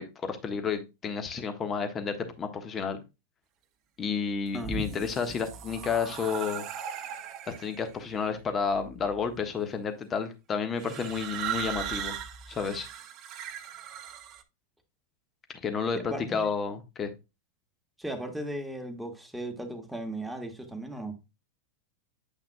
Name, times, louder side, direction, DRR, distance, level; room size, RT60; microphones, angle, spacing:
voice 1, 0.0-3.0 4.0-6.7 7.5-12.2 12.5-12.9 15.6-17.1, left 6 dB, 25° left, 1.4 m, -31 dB
sound 1, 4.4-7.9 8.7-9.2 10.8-14.4, right 8 dB, 45° right, 0.9 m, -38 dB
voice 2, 15.9-16.5 18.0-21.2, right 1 dB, 5° right, 1.6 m, -37 dB
8.8 x 5.7 x 2.3 m
hypercardioid pair, 95°, 0 cm